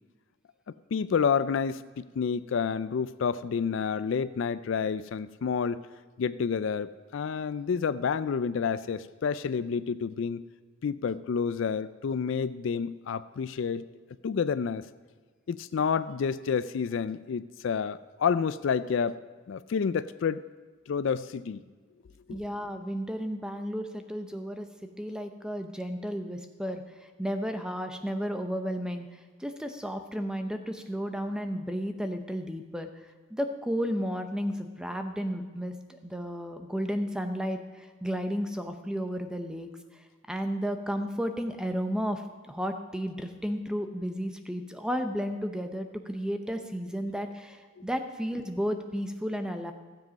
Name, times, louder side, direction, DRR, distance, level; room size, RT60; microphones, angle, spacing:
voice 1, 0.9-5.8 6.2-10.4 10.8-13.8 14.2-14.8 15.5-19.2 19.5-20.4 20.9-21.6 22.3-22.4, left 6 dB, 65° left, 15 dB, 0.3 m, -29 dB
voice 2, 22.3-24.7 25.0-49.7, equal, 5° right, 6 dB, 0.6 m, -33 dB
15.5 x 7.5 x 5.2 m, 1.5 s
head